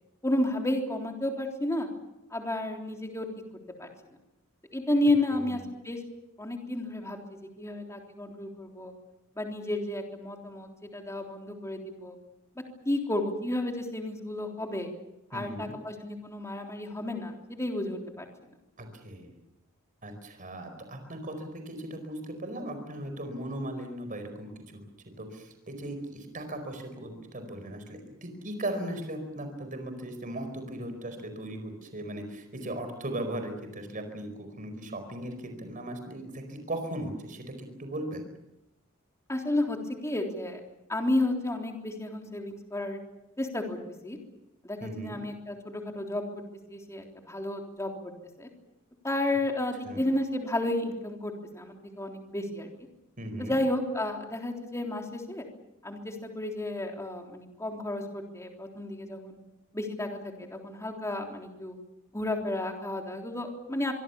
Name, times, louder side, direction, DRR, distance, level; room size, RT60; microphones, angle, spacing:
voice 1, 0.2-1.9 2.3-3.3 3.8-3.9 4.7-5.6 5.8-6.0 6.4-7.2 7.6-8.9 9.4-12.2 12.9-14.9 15.3-18.3 39.3-39.8 40.0-40.6 40.9-43.0 43.4-43.8 44.0-44.2 44.6-46.2 46.7-47.9 48.4-48.5 49.0-52.7 53.4-55.5 55.8-59.4 59.7-61.8 62.1-63.9, left 1 dB, 15° left, 2 dB, 3.6 m, -32 dB
voice 2, 5.3-5.6 15.3-15.7 18.8-19.3 20.0-24.8 25.2-38.2 44.8-45.2 49.8-50.0 53.2-53.5, right 1 dB, 40° right, 7 dB, 4.7 m, -38 dB
24.5 x 24.0 x 7.1 m, 0.92 s
head